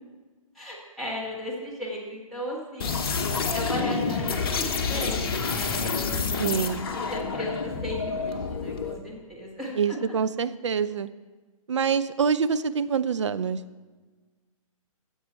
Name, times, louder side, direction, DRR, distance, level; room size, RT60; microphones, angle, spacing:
voice 1, 0.6-3.0 3.5-6.2 6.9-10.0, equal, ahead, -8 dB, 2.0 m, -36 dB
sound 1, 2.8-9.0, left 5 dB, 40° left, 1.1 m, -28 dB
voice 2, 6.4-6.8 9.8-11.1 11.7-13.6, right 6 dB, 55° right, 12 dB, 0.5 m, -25 dB
13.5 x 8.1 x 4.4 m, 1.3 s
figure-of-eight pair, 130°, 18 cm